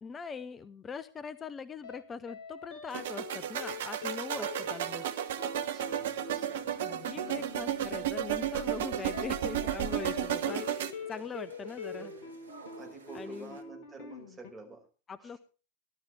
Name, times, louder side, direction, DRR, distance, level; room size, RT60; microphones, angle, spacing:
voice 1, 0.0-5.1 6.8-10.7 11.1-12.1 13.1-13.6 15.1-15.4, left 5 dB, 20° left, 15 dB, 0.8 m, -42 dB
sound 1, 1.8-2.0 2.3-14.5, left 5 dB, 45° left, 2.3 m, -45 dB
sound 2, 2.9-10.9, right 10 dB, 55° right, 1.1 m, -33 dB
voice 2, 4.3-4.7 5.6-8.4 10.1-10.6 12.8-14.9 15.2-15.4, right 3 dB, 15° right, 2 dB, 5.5 m, -50 dB
sound 3, 8.5-13.6, right 3 dB, 75° right, 1.7 m, -51 dB
18.0 x 12.0 x 3.4 m, 0.36 s
figure-of-eight pair, 90°, 0 cm